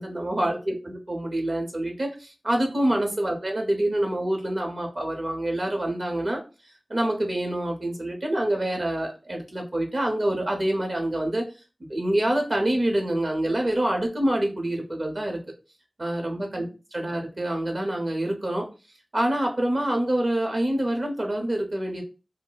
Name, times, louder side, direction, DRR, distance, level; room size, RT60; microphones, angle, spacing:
voice 1, 0.0-6.4 6.9-11.4 11.8-15.4 16.0-18.6 19.1-22.0, right 1 dB, 50° right, 2 dB, 0.7 m, -26 dB
2.3 x 2.1 x 3.8 m, 0.31 s
wide cardioid pair, 80°, 0 cm